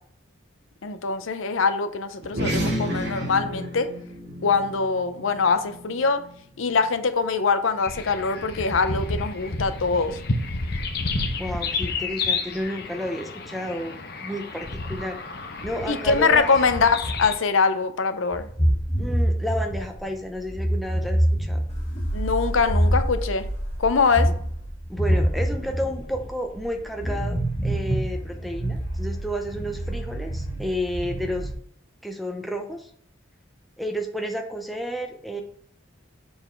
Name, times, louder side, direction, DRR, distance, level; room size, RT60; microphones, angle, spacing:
voice 1, 0.8-3.9 4.4-6.2 6.6-10.2 15.9-18.5 22.1-23.4 23.8-24.3, left 4 dB, 80° left, 10 dB, 0.6 m, -23 dB
sound 1, 2.2-7.0, equal, 60° right, 2.0 m, -31 dB
sound 2, 7.8-17.3, left 3 dB, 55° left, 0.9 m, -30 dB
voice 2, 11.4-15.2 15.6-16.5 19.0-21.6 24.3-24.4 24.9-31.5 32.0-32.9 33.8-35.4, equal, ahead, 2 dB, 0.7 m, -31 dB
sound 3, 18.3-31.5, equal, 35° left, 1.6 m, -26 dB
6.9 x 4.0 x 4.4 m, 0.62 s
head